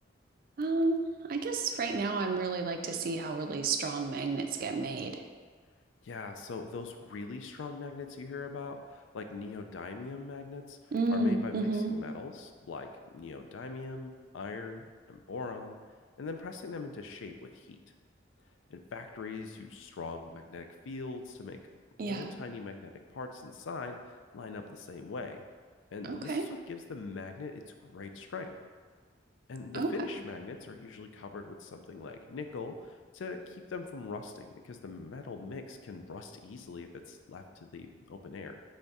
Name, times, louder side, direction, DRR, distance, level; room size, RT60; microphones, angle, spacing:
voice 1, 0.6-5.2 10.9-12.0 22.0-22.3 26.0-26.4 29.7-29.9, right 3 dB, 50° right, 5 dB, 0.3 m, -31 dB
voice 2, 6.0-12.9 13.1-15.7 16.2-17.8 18.7-21.6 22.0-25.4 25.9-28.5 29.5-38.6, left 4 dB, 85° left, 6 dB, 0.4 m, -42 dB
3.5 x 3.3 x 4.0 m, 1.5 s
head